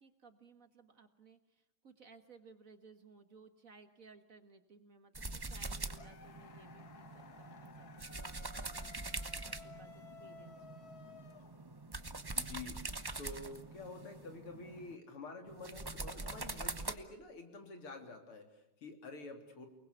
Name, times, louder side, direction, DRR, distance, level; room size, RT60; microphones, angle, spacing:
voice 1, 0.0-8.9 9.4-10.9, right 4 dB, 40° right, 8 dB, 1.8 m, -60 dB
sound 1, 5.1-15.0 15.5-17.0, right 2 dB, 25° right, 0.5 m, -44 dB
sound 2, 5.9-12.0, left 4 dB, 50° left, 1.8 m, -56 dB
voice 2, 12.3-12.8 13.2-19.7, left 3 dB, 85° left, 5 dB, 4.1 m, -48 dB
29.0 x 20.5 x 8.3 m, 0.78 s
omnidirectional pair, 2.3 m